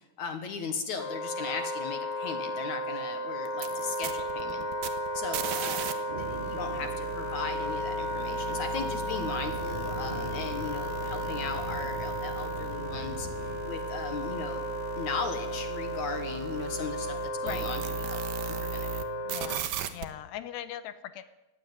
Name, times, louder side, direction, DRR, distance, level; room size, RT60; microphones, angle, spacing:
voice 1, 0.2-4.7 5.1-13.3 13.6-14.6 15.0-17.8 18.1-18.9, left 5 dB, 60° left, 8 dB, 2.2 m, -37 dB
Wind instrument woodwind instrument, 1.0-19.6, equal, 40° left, 1.7 m, -34 dB
sound 1, 3.5-5.9 6.2-19.0 19.3-20.0, right 7 dB, 65° right, 2.7 m, -38 dB
Thunder, 6.1-13.6, right 1 dB, 20° right, 1.6 m, -44 dB
voice 2, 19.2-21.3, left 11 dB, 80° left, 12 dB, 3.0 m, -40 dB
19.5 x 15.5 x 9.4 m, 0.99 s
omnidirectional pair, 4.9 m